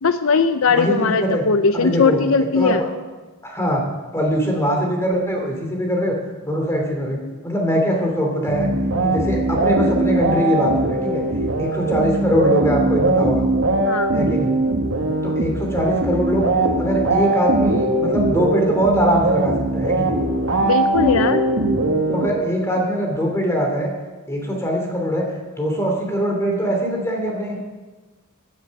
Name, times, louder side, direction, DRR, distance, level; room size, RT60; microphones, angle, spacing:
voice 1, 0.0-2.8 13.9-14.1 20.6-21.4, left 4 dB, 70° left, 10 dB, 0.6 m, -19 dB
voice 2, 0.7-1.4 1.7-2.9 3.4-3.8 4.1-6.1 6.5-7.2 7.4-8.7 9.0-11.2 11.6-13.5 14.1-14.5 15.2-16.5 16.8-20.2 22.1-23.9 24.3-25.2 25.6-27.6, equal, 10° left, 0 dB, 2.9 m, -22 dB
sound 1, 8.5-22.8, right 2 dB, 65° right, 1.7 m, -20 dB
16.0 x 9.5 x 6.5 m, 1.3 s
head